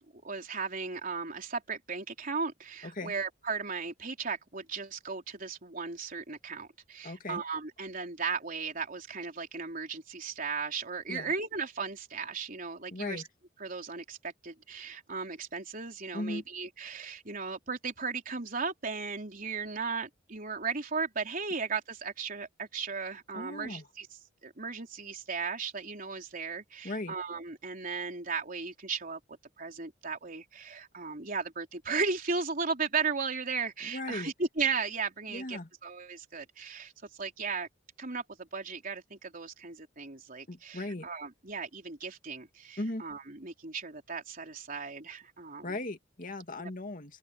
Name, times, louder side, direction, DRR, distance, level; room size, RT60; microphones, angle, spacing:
voice 1, 0.1-13.2 13.6-24.1 24.4-29.2 29.6-37.7 38.0-45.7 46.6-46.7, right 5 dB, 50° right, 3.8 m, -36 dB
voice 2, 2.8-3.1 7.0-7.4 11.1-11.3 12.9-13.3 16.1-16.4 23.3-23.8 26.8-27.2 33.8-34.3 35.3-35.7 40.5-41.1 42.8-43.0 45.6-47.2, left 2 dB, 45° left, 2.4 m, -37 dB
open air
head